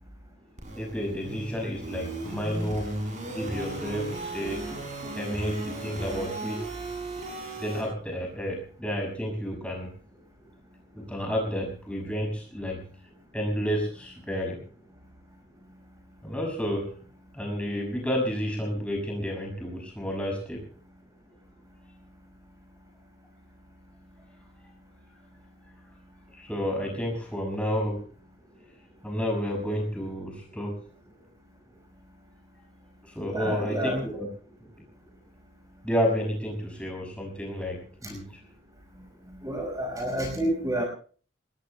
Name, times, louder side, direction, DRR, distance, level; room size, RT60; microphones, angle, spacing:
sound 1, 0.6-7.8, right 2 dB, 40° right, 7.5 m, -36 dB
voice 1, 0.7-2.9 3.2-4.7 5.1-6.7 7.6-9.9 10.9-12.8 13.3-14.6 16.2-16.9 17.3-20.7 26.3-28.0 29.0-30.8 33.0-34.3 35.8-38.3, equal, 5° left, 1 dB, 6.2 m, -31 dB
voice 2, 33.2-34.0 38.0-38.1 39.4-40.8, right 1 dB, 20° right, 2 dB, 5.1 m, -29 dB
27.0 x 20.5 x 2.2 m, 0.42 s
head